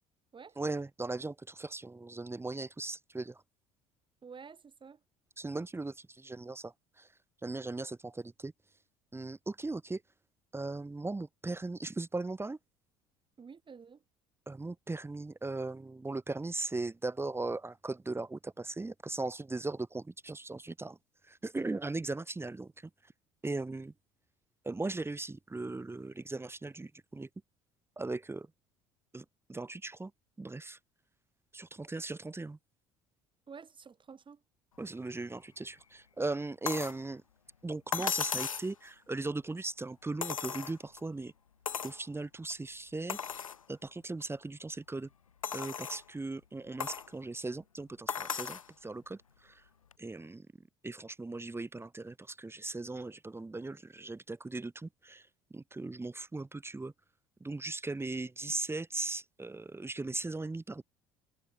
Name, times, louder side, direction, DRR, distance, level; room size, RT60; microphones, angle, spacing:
voice 1, 0.6-3.4 5.4-7.1 7.4-8.5 9.1-10.0 10.5-12.6 14.5-21.0 21.3-22.7 23.4-23.9 24.6-27.3 28.0-28.5 29.1-30.1 30.4-30.8 31.5-32.6 34.8-37.2 37.6-41.3 41.8-43.4 43.7-45.1 45.5-49.2 49.4-49.6 50.0-50.5 50.8-55.2 55.5-56.9 57.4-60.8, right 2 dB, 15° right, 2.3 m, -38 dB
voice 2, 4.2-5.0 13.4-14.0 33.5-34.4, right 5 dB, 30° right, 4.8 m, -50 dB
sound 1, 36.7-37.0 37.9-38.7 40.2-41.0 41.7-42.0 42.5-42.6 43.1-43.6 44.2-44.3 45.4-46.0 46.8-47.1 48.1-48.7 49.9-50.0, left 7 dB, 85° left, 0.8 m, -36 dB
figure-of-eight pair, 60°, 17 cm